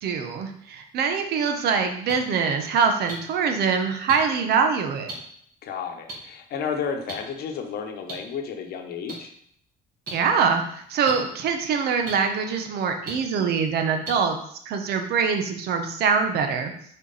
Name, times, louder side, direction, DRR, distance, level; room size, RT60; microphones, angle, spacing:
voice 1, 0.0-5.1 10.1-10.6 10.9-14.4 14.7-16.7, right 6 dB, 70° right, 5 dB, 1.0 m, -24 dB
sound 1, 2.1-2.2 3.1-3.2 4.1-4.2 5.1-5.2 6.1-6.2 7.1-7.2 8.1-8.2 9.1-9.2 10.1-10.2 11.1-11.2 12.1-12.2 13.1-13.2 14.0-14.1 15.0-15.1, right 3 dB, 55° right, 2.1 m, -34 dB
voice 2, 5.6-9.3, left 6 dB, 65° left, 4 dB, 1.0 m, -32 dB
5.5 x 4.6 x 4.1 m, 0.65 s
cardioid pair, 110°, 17 cm